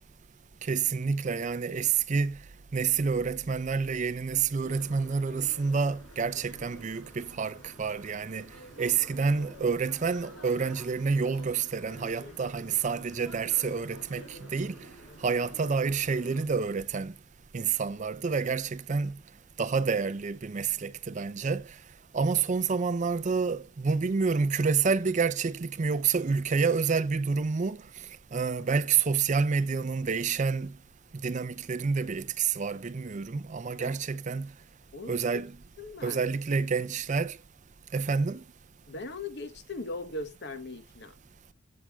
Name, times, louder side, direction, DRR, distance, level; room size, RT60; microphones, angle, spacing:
voice 1, 0.6-2.4 2.7-8.5 8.8-14.8 15.2-17.1 17.5-19.2 19.6-21.6 22.1-27.8 28.3-30.7 31.2-34.5 35.1-35.5 36.0-37.4 37.9-38.4, right 5 dB, 35° right, 0.4 m, -28 dB
sound 1, 4.6-16.4, equal, 70° left, 4.8 m, -50 dB
voice 2, 34.9-35.4 35.8-36.2 38.9-41.1, left 2 dB, 50° left, 1.0 m, -39 dB
14.5 x 7.5 x 2.3 m
head